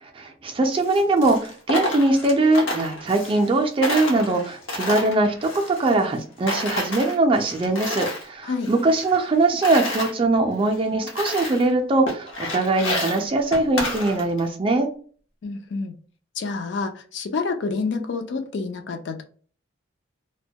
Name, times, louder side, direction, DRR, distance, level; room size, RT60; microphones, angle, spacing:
voice 1, 0.0-14.9, right 2 dB, 25° right, 4 dB, 0.3 m, -21 dB
Coin (dropping), 0.7-3.6 3.8-6.2 6.5-8.3 8.6-10.1 10.7-10.8 11.1-11.7 12.1-14.5, left 1 dB, 80° left, 0.7 m, -30 dB
voice 2, 15.4-15.9 16.4-19.2, left 4 dB, 60° left, 6 dB, 0.4 m, -28 dB
2.1 x 2.1 x 2.7 m, 0.43 s
head